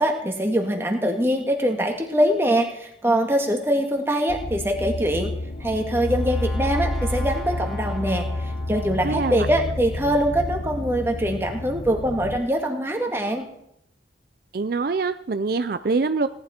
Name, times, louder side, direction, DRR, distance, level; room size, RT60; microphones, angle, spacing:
voice 1, 0.0-5.3 5.6-13.4, equal, 15° right, 3 dB, 1.8 m, -23 dB
sound 1, 4.3-12.4, left 1 dB, 70° left, 1.0 m, -29 dB
Brass instrument, 5.3-9.4, left 1 dB, ahead, 2.7 m, -41 dB
voice 2, 9.0-9.5 14.5-16.3, right 4 dB, 55° right, 12 dB, 0.5 m, -24 dB
18.0 x 11.0 x 4.4 m, 0.76 s
head